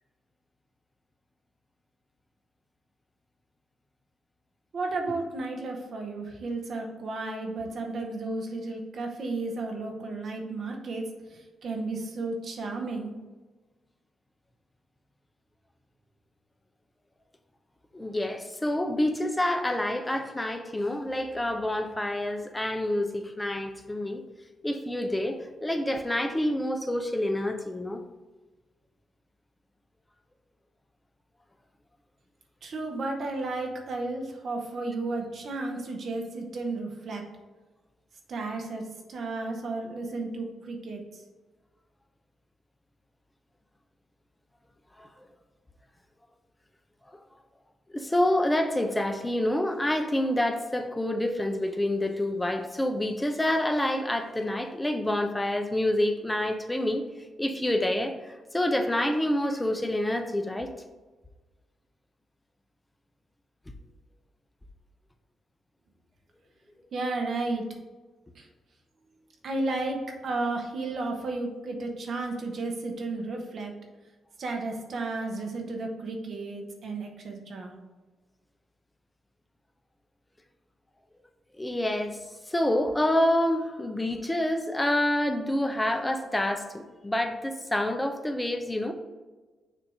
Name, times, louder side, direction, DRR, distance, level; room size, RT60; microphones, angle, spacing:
voice 1, 4.7-11.0 11.3-13.1 32.6-37.2 38.3-41.2 66.9-67.6 68.3-68.5 69.4-73.7 74.4-77.7, right 2 dB, 60° right, 2 dB, 1.2 m, -33 dB
voice 2, 17.9-24.2 24.6-28.0 45.0-45.1 47.9-57.1 57.4-60.7 81.6-82.2 82.5-88.9, left 1 dB, 15° left, 5 dB, 0.8 m, -27 dB
6.7 x 2.9 x 4.9 m, 1.2 s
hypercardioid pair, 45°, 0 cm